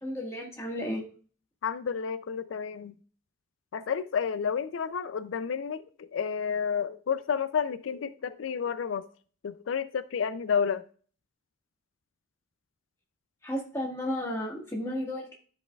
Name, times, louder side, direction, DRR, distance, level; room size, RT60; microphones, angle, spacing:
voice 1, 0.0-1.0 13.4-15.4, left 1 dB, 15° left, 1.6 m, -33 dB
voice 2, 1.6-2.9 3.7-9.1 9.4-10.8, left 6 dB, 90° left, 0.4 m, -30 dB
12.5 x 5.3 x 2.3 m
head